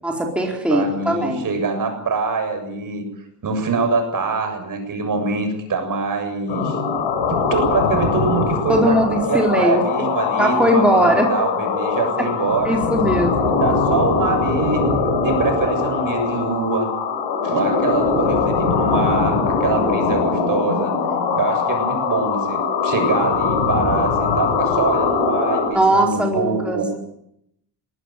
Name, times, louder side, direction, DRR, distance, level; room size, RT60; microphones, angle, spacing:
voice 1, 0.0-1.4 8.7-9.8 10.4-11.3 12.2-12.3 12.6-13.3 25.7-27.0, equal, 5° right, 0 dB, 4.2 m, -19 dB
voice 2, 0.7-3.1 3.4-6.8 7.3-12.8 13.6-16.9 17.4-20.9 21.4-26.9, right 4 dB, 45° right, 6 dB, 7.3 m, -24 dB
sound 1, 6.5-25.7, left 5 dB, 90° left, 7.6 m, -21 dB
22.0 x 18.0 x 9.3 m, 0.77 s
cardioid pair, 110°, 44 cm